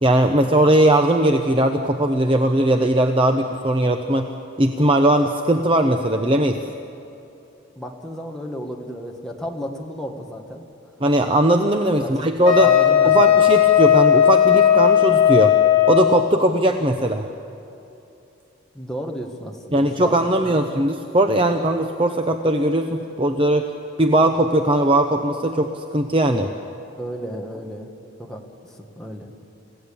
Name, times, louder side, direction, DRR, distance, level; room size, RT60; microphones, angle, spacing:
voice 1, 0.0-4.3 4.6-6.6 11.0-12.7 13.0-15.6 15.9-17.3 19.7-23.7 24.0-26.5, right 1 dB, 25° right, 5 dB, 0.8 m, -19 dB
voice 2, 7.8-10.7 12.0-13.4 18.7-20.7 27.0-27.9 28.2-28.4 28.7-29.3, equal, ahead, 0 dB, 1.8 m, -33 dB
Wind instrument woodwind instrument, 12.4-16.3, left 10 dB, 85° left, 1.5 m, -15 dB
28.5 x 15.5 x 8.7 m, 2.9 s
head